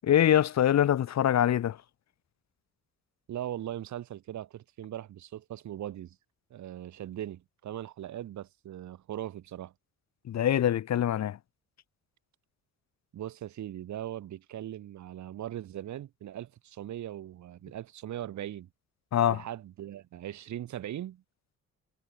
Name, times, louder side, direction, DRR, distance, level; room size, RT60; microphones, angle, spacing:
voice 1, 0.0-1.8 10.3-11.4 19.1-19.4, left 10 dB, 60° left, 1.8 m, -24 dB
voice 2, 3.3-6.2 6.5-9.7 13.1-18.7 19.3-21.2, right 12 dB, 70° right, 2.2 m, -39 dB
cardioid pair, 90°, 30 cm